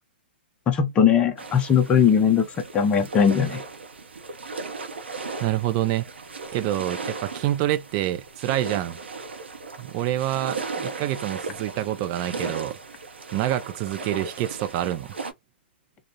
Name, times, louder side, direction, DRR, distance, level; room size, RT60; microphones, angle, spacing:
voice 1, 0.7-2.5 2.7-3.6, left 7 dB, 20° left, 0.5 m, -19 dB
sound 1, 1.4-15.3, right 4 dB, 80° right, 0.6 m, -36 dB
voice 2, 5.4-6.0 6.5-9.0 9.8-12.8 13.3-15.1, right 13 dB, 35° right, 0.4 m, -27 dB
2.5 x 2.0 x 2.7 m
hypercardioid pair, 120°, 6 cm